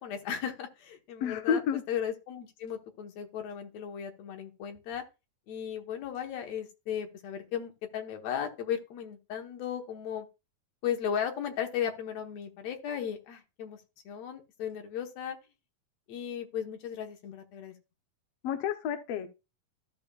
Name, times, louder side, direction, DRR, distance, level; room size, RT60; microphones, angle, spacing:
voice 1, 0.0-5.0 5.5-10.3 10.8-13.8 14.1-15.4 16.1-17.7, left 8 dB, 60° left, 2.1 m, -36 dB
voice 2, 1.2-1.8 18.4-19.3, left 8 dB, 85° left, 1.4 m, -30 dB
13.0 x 6.8 x 2.4 m
omnidirectional pair, 4.0 m